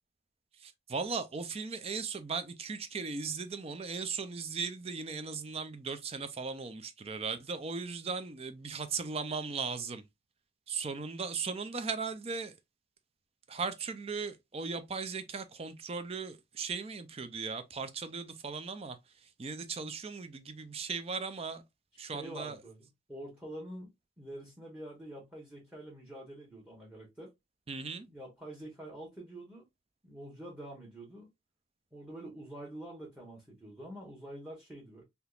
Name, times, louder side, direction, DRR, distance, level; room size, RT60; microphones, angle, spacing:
voice 1, 0.6-10.0 10.7-12.5 13.5-21.6 22.0-22.6 27.7-28.1, right 5 dB, 30° right, 0.4 m, -37 dB
voice 2, 21.9-23.9 24.2-27.3 28.1-29.6 30.0-31.3 31.9-35.0, right 1 dB, 5° right, 0.9 m, -46 dB
3.5 x 2.8 x 2.4 m
head